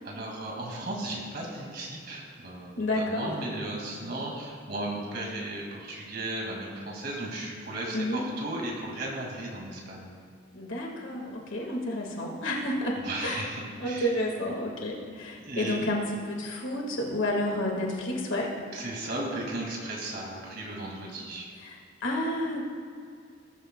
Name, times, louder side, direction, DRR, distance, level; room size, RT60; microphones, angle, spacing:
voice 1, 0.0-10.1 13.0-14.1 15.4-15.9 18.7-21.5, right 1 dB, 50° right, -2 dB, 2.1 m, -35 dB
voice 2, 2.8-3.3 7.9-8.2 10.5-13.5 13.8-18.5 21.6-22.7, left 1 dB, 75° left, -1 dB, 1.7 m, -30 dB
20.0 x 12.5 x 2.2 m, 2.2 s
head